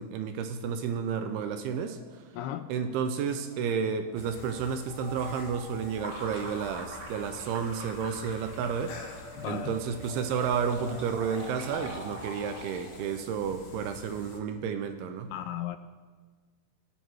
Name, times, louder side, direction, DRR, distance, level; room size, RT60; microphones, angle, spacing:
voice 1, 0.0-2.0 2.7-9.0 9.4-15.3, right 6 dB, 80° right, 8 dB, 2.5 m, -31 dB
sound 1, 1.7-12.0, right 3 dB, 60° right, 3.6 m, -49 dB
voice 2, 2.3-2.7 9.4-9.8 15.3-15.8, left 12 dB, 85° left, 10 dB, 2.4 m, -35 dB
sound 2, 4.2-14.4, left 3 dB, 60° left, 2.0 m, -49 dB
sound 3, 5.9-13.2, equal, 40° right, 1.7 m, -43 dB
18.0 x 6.0 x 4.7 m, 1.4 s
omnidirectional pair, 4.8 m